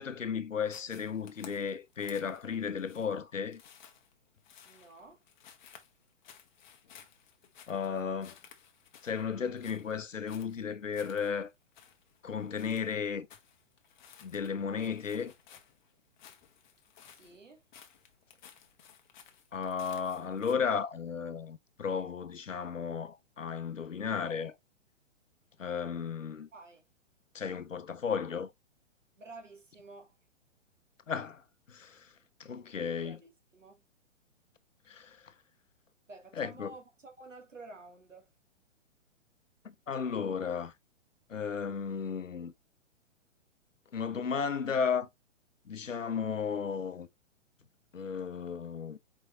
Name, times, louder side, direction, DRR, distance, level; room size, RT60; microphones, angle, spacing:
voice 1, 0.0-3.6 7.7-8.4 9.0-11.5 12.2-13.3 14.2-15.3 19.5-24.6 25.6-26.5 27.3-28.5 31.1-32.1 32.4-33.2 34.9-35.3 36.4-36.7 39.6-40.7 41.3-42.5 43.9-45.1 45.7-47.1 47.9-49.0, left 6 dB, 85° left, 0.7 m, -34 dB
sound 1, 0.6-20.5, left 8 dB, 40° left, 1.0 m, -57 dB
voice 2, 4.7-5.2 17.1-17.6 26.5-26.9 29.2-30.2 33.0-33.8 36.1-38.3, right 2 dB, 80° right, 1.9 m, -51 dB
4.7 x 4.6 x 2.4 m
figure-of-eight pair, 120°, 37 cm